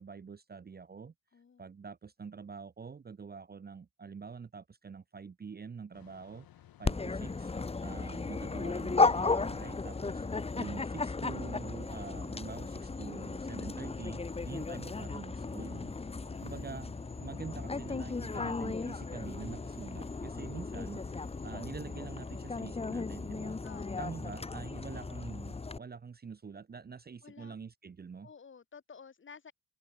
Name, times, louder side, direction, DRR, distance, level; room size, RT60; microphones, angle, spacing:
voice 1, 0.0-1.1 1.6-6.5 6.8-7.5 7.8-10.3 10.5-15.9 16.4-23.6 24.0-28.3, right 5 dB, 25° right, 1.0 m, -46 dB
voice 2, 1.3-1.7 16.2-16.7 23.6-24.1 27.2-27.6 28.2-29.5, left 6 dB, 30° left, 2.1 m, -53 dB
sound 1, 5.9-22.6, left 12 dB, 70° left, 2.9 m, -58 dB
Dog, 6.8-25.8, left 3 dB, 15° left, 1.1 m, -35 dB
cardioid pair, 115°, 37 cm